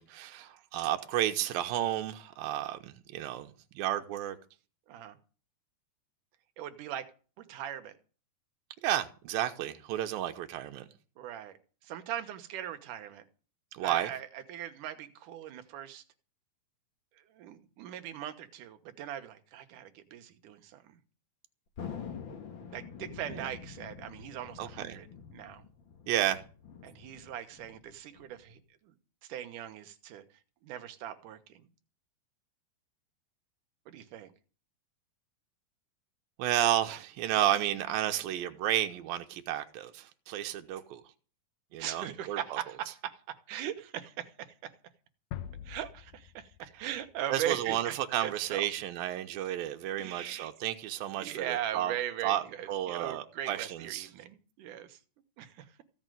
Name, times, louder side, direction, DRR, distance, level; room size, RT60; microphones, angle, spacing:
voice 1, 0.0-4.4 8.8-10.9 13.7-14.1 23.3-23.5 24.6-25.0 26.1-26.4 36.4-41.0 41.7-42.6 47.3-51.9 52.2-54.1, right 12 dB, 90° right, 2.7 m, -32 dB
voice 2, 6.6-7.1 7.4-8.0 11.2-11.6 11.8-13.2 13.8-16.0 17.3-21.0 22.7-25.6 26.8-28.9 29.2-30.2 30.6-31.7 33.9-34.3 41.8-44.7 45.6-47.9 48.2-48.7 50.0-50.5 51.2-55.0 55.4-55.7, right 11 dB, 70° right, 2.6 m, -40 dB
Thunder, 21.8-28.6, left 6 dB, 45° left, 1.7 m, -46 dB
sound 1, 45.3-48.1, left 10 dB, 70° left, 1.7 m, -45 dB
15.5 x 6.4 x 9.2 m
omnidirectional pair, 4.0 m